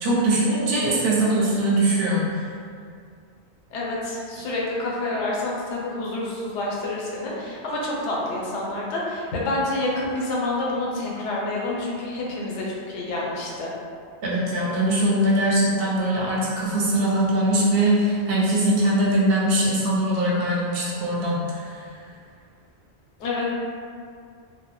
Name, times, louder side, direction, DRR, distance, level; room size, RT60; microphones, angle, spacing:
voice 1, 0.0-2.4 14.2-21.8, right 1 dB, 65° right, -6 dB, 0.7 m, -21 dB
voice 2, 3.7-13.7 23.2-23.5, left 2 dB, 85° left, -4 dB, 0.9 m, -28 dB
2.1 x 2.1 x 2.8 m, 2.3 s
omnidirectional pair, 1.2 m